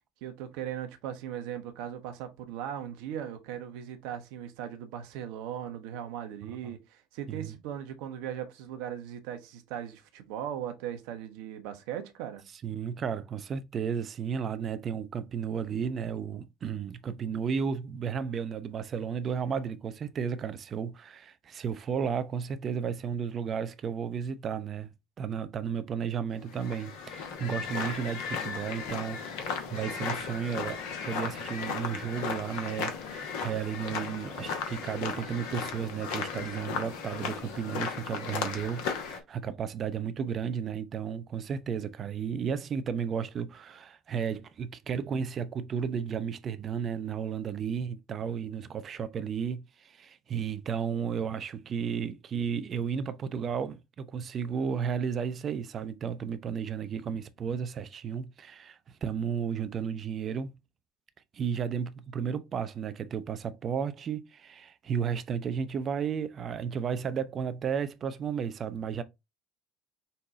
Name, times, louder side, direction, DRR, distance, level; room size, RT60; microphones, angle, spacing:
voice 1, 0.2-12.4, right 10 dB, 65° right, 0.9 m, -38 dB
voice 2, 12.6-24.9 25.2-60.5 61.3-69.0, right 7 dB, 40° right, 0.6 m, -33 dB
sound 1, 26.4-39.2, left 6 dB, 65° left, 0.9 m, -36 dB
5.6 x 2.2 x 3.9 m
hypercardioid pair, 70°, 0 cm